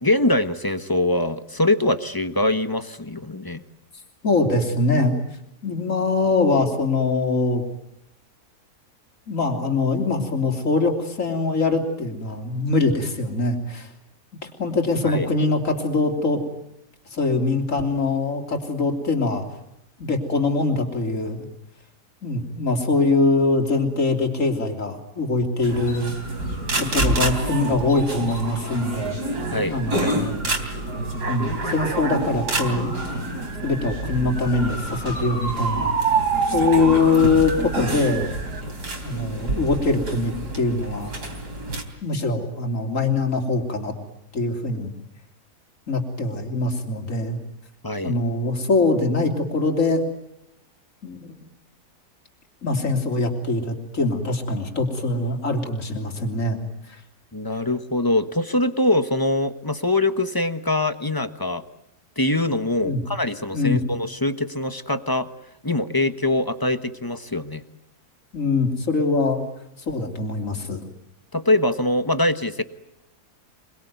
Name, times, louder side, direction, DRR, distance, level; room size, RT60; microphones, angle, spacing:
voice 1, 0.0-3.6 15.0-15.3 29.5-30.2 47.8-48.2 57.3-61.6 62.2-65.3 65.6-67.6 71.3-72.6, left 2 dB, 15° left, 10 dB, 1.1 m, -23 dB
voice 2, 4.2-5.2 5.6-7.6 9.3-13.9 14.4-16.4 17.1-19.4 20.0-21.5 22.2-26.1 26.8-29.2 29.7-30.6 31.3-35.9 36.5-38.3 39.0-41.2 42.0-43.9 44.3-44.9 45.9-47.4 48.0-50.0 51.0-51.3 52.6-56.6 56.9-57.0 62.8-63.0 63.5-63.8 68.3-69.4 69.8-70.8, left 3 dB, 50° left, 4 dB, 3.7 m, -23 dB
sound 1, 25.6-41.8, right 3 dB, 80° right, 4.1 m, -27 dB
28.0 x 21.0 x 9.4 m, 0.82 s
omnidirectional pair, 1.7 m